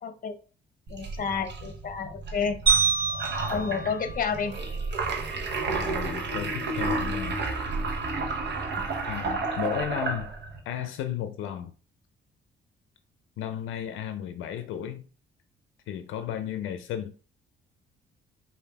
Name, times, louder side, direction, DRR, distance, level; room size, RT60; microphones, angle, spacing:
voice 1, 0.0-0.4 0.9-2.6 3.5-4.5, left 6 dB, 45° left, 0.8 m, -30 dB
sound 1, 0.9-10.6, right 3 dB, 60° right, 1.0 m, -31 dB
sound 2, 2.7-5.0, right 5 dB, 20° right, 2.4 m, -27 dB
voice 2, 3.5-3.9 5.7-7.4 9.1-10.3 10.7-11.7 13.4-15.0 15.9-17.1, left 10 dB, 85° left, 0.5 m, -34 dB
5.1 x 2.6 x 3.3 m
cardioid pair, 90°, 20 cm